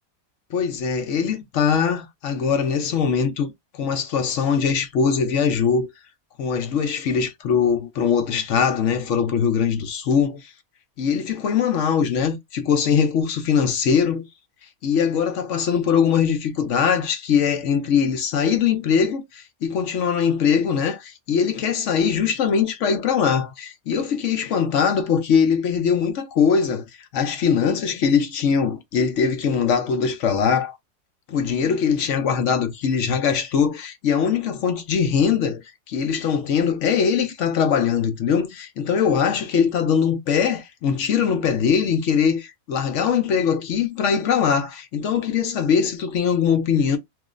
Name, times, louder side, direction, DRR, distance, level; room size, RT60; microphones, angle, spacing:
voice 1, 0.5-5.9 6.4-10.5 11.0-14.3 14.8-30.8 31.3-47.0, left 7 dB, 65° left, 1.0 m, -21 dB
3.0 x 2.0 x 3.6 m
omnidirectional pair, 1.4 m